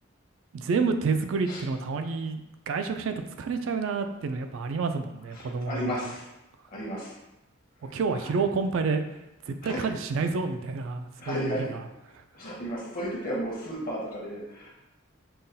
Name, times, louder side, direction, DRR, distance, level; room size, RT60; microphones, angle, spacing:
voice 1, 0.5-2.4 2.7-5.9 7.8-9.0 9.5-11.5, right 4 dB, 70° right, 7 dB, 0.3 m, -29 dB
voice 2, 5.3-6.3 6.7-7.1 7.9-8.4 9.6-9.9 11.2-11.7 12.3-14.7, equal, 45° left, -4 dB, 0.8 m, -34 dB
5.5 x 2.2 x 2.6 m, 0.96 s
head